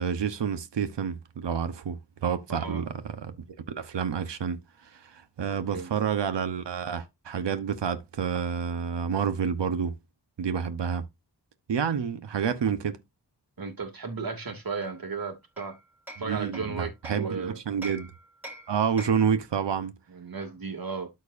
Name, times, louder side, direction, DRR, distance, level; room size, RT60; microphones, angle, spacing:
voice 1, 0.0-2.8 3.2-3.3 3.7-9.9 10.4-11.0 11.7-13.0 16.2-18.1 18.7-19.9, right 7 dB, 80° right, 1.1 m, -29 dB
voice 2, 2.5-2.9 5.5-5.9 13.6-15.8 16.2-17.6 19.3-19.4 20.1-21.1, right 4 dB, 55° right, 2.6 m, -35 dB
Hammer, 14.8-17.3 17.8-19.4, right 1 dB, 5° right, 4.5 m, -45 dB
13.0 x 4.6 x 2.6 m
wide cardioid pair, 95°, 42 cm